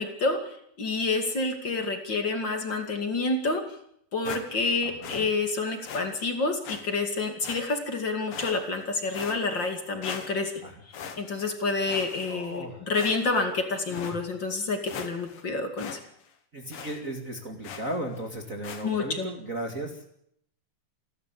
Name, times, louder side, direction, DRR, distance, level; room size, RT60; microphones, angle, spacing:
voice 1, 0.0-3.6 4.1-10.6 11.2-16.0 18.8-19.3, left 3 dB, 35° left, 6 dB, 2.7 m, -28 dB
sound 1, 4.2-4.7 5.0-5.3 5.8-6.0 6.6-6.8 7.4-7.9 8.3-8.8 9.1-9.7 10.0-10.6 10.9-11.5 11.9-12.6 12.9-13.4 13.9-14.2 14.6-14.7 14.9-15.4 15.8-16.0 16.3-16.4 16.7-17.0 17.6-18.0 18.6-18.8, left 7 dB, 85° left, 3.9 m, -40 dB
voice 2, 4.8-5.3 10.6-10.8 12.3-12.8 16.5-20.0, right 1 dB, 25° right, 3 dB, 2.2 m, -36 dB
28.5 x 12.5 x 8.5 m, 0.71 s
omnidirectional pair, 4.0 m